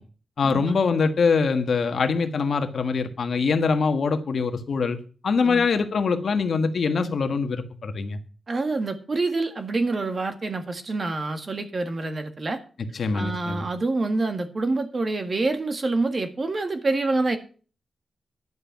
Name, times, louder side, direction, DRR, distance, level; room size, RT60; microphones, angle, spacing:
voice 1, 0.4-5.0 5.2-8.2 12.9-13.7, left 5 dB, 60° left, 8 dB, 1.4 m, -23 dB
voice 2, 8.5-12.6 13.1-17.4, right 3 dB, 35° right, 7 dB, 1.7 m, -26 dB
11.0 x 7.9 x 5.9 m, 0.38 s
wide cardioid pair, 150°, 0 cm